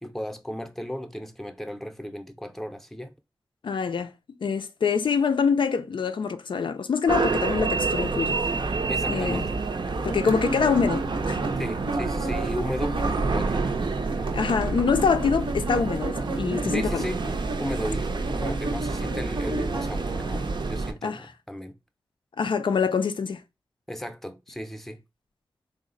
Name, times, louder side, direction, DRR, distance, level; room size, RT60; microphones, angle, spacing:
voice 1, 0.0-3.1 8.9-9.6 11.6-13.8 16.7-17.2 17.6-21.7 23.9-25.0, equal, 5° left, 0.5 m, -35 dB
voice 2, 3.6-4.1 4.4-8.4 9.1-9.5 10.0-11.4 14.3-17.1 21.0-21.3 22.4-23.4, left 5 dB, 80° left, 0.4 m, -25 dB
sound 1, 7.1-20.9, right 3 dB, 70° right, 0.5 m, -28 dB
sound 2, 10.3-13.4 13.7-20.4, right 1 dB, 85° right, 0.9 m, -34 dB
3.9 x 2.0 x 3.7 m
wide cardioid pair, 70°, 8 cm